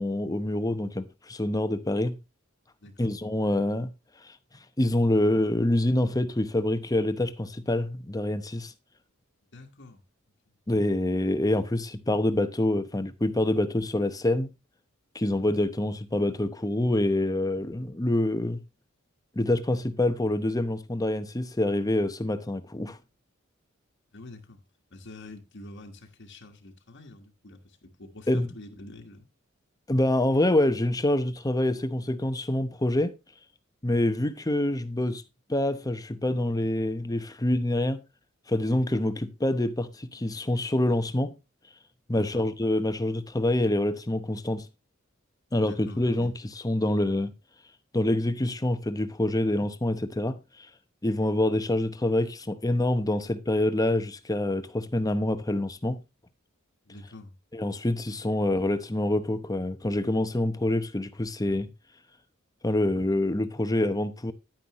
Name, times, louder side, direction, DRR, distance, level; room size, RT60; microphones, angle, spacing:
voice 1, 0.0-2.2 3.0-3.9 4.8-8.7 10.7-14.5 15.1-18.6 19.4-23.0 28.3-28.5 29.9-33.1 33.8-35.2 35.5-38.0 38.5-41.3 42.1-44.7 45.5-46.3 46.6-47.3 47.9-50.4 51.0-56.0 57.5-61.7 62.6-64.3, left 1 dB, 15° left, 0.8 m, -26 dB
voice 2, 2.8-3.2 9.5-10.0 24.1-24.6 24.9-29.3 42.1-42.5 45.6-46.3 56.8-57.3, left 2 dB, 60° left, 1.5 m, -46 dB
10.5 x 9.5 x 3.0 m
head